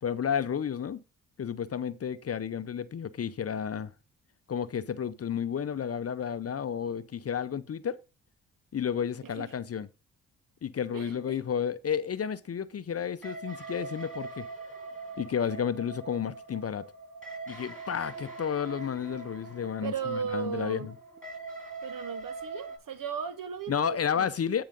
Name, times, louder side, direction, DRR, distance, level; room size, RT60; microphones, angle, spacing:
voice 1, 0.0-1.0 1.4-3.9 4.5-8.0 8.7-9.9 10.6-14.5 15.2-16.9 17.5-20.9 23.7-24.6, left 8 dB, 40° left, 0.7 m, -32 dB
voice 2, 9.2-9.5 10.9-11.4 19.8-20.9 21.8-24.3, right 6 dB, 55° right, 1.4 m, -36 dB
sound 1, 13.2-22.8, right 3 dB, 5° left, 5.3 m, -43 dB
8.9 x 4.8 x 5.2 m
supercardioid pair, 50°, 38 cm